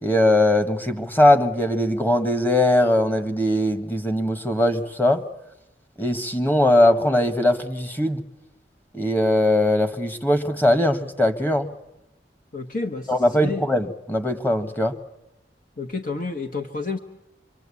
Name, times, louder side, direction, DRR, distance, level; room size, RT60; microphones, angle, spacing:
voice 1, 0.0-5.2 6.0-8.2 8.9-11.7 13.1-15.0, left 1 dB, 10° left, 9 dB, 1.6 m, -20 dB
voice 2, 12.5-13.7 15.8-17.0, left 3 dB, 50° left, 5 dB, 1.3 m, -30 dB
26.0 x 24.0 x 8.5 m, 0.88 s
head